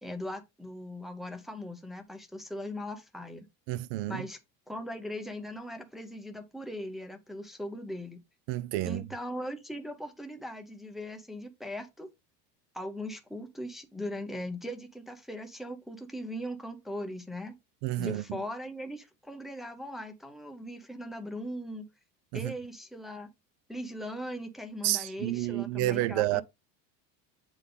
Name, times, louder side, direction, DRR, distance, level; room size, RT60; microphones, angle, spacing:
voice 1, 0.0-3.5 4.1-4.4 4.7-8.2 8.8-12.1 12.7-17.5 18.0-21.9 22.3-23.3 23.7-26.4, left 1 dB, ahead, 0.6 m, -39 dB
voice 2, 3.7-4.2 8.5-9.0 17.8-18.4 22.3-22.5 24.8-26.4, right 16 dB, 50° right, 0.4 m, -30 dB
8.0 x 3.7 x 3.8 m
cardioid pair, 175°, 34 cm